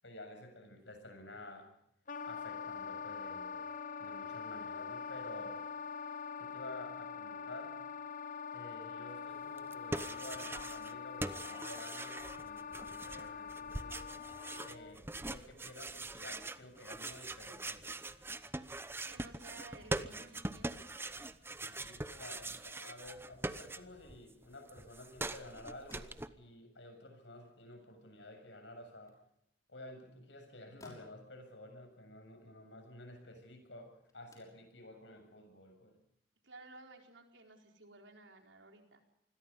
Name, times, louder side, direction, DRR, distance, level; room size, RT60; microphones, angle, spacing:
voice 1, 0.0-1.7 2.3-3.7 4.0-5.6 6.4-7.8 8.5-14.0 14.6-18.0 21.7-29.1 29.7-36.0, left 1 dB, 70° left, 5 dB, 7.3 m, -52 dB
Wind instrument woodwind instrument, 2.1-15.0, left 6 dB, 45° left, 1.0 m, -44 dB
sound 1, 9.6-10.9 11.2-24.2 24.4-26.3, right 2 dB, 15° right, 0.9 m, -43 dB
voice 2, 19.1-20.9 36.4-39.0, right 2 dB, 80° right, 3 dB, 4.4 m, -55 dB
sound 2, 25.7-36.2, left 2 dB, 20° left, 6.1 m, -68 dB
27.5 x 21.0 x 5.5 m, 0.76 s
head